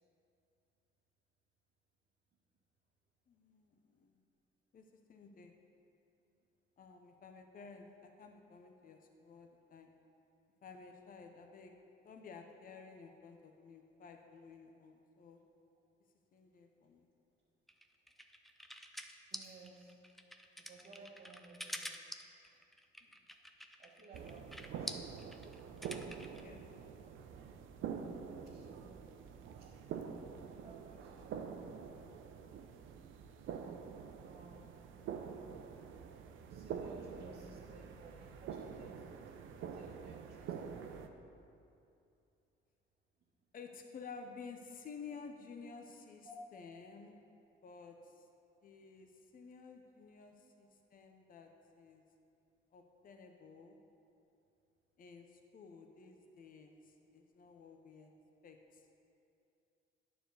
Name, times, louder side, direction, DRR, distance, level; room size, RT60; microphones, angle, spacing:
voice 1, 3.3-4.2 4.7-5.5 6.8-9.9 10.6-11.7 12.0-15.4 16.3-17.1 23.0-23.1 26.4-26.6 43.5-47.2 47.6-48.3 48.6-51.5 51.7-52.0 52.7-53.8 55.0-58.1 58.4-58.9, left 5 dB, 45° left, 4 dB, 0.7 m, -53 dB
sound 1, 17.7-26.4, equal, ahead, 0.5 m, -47 dB
voice 2, 19.3-20.0 20.6-22.0 23.8-25.5 27.9-28.9 29.6-29.7 30.4-32.3 34.2-34.9 36.5-39.4 39.7-40.8 46.2-46.4 50.4-50.5, right 3 dB, 55° right, -5 dB, 1.3 m, -58 dB
sound 2, 24.1-41.1, right 7 dB, 80° right, 0.6 m, -46 dB
9.2 x 4.4 x 6.6 m, 2.6 s
cardioid pair, 90°, 20 cm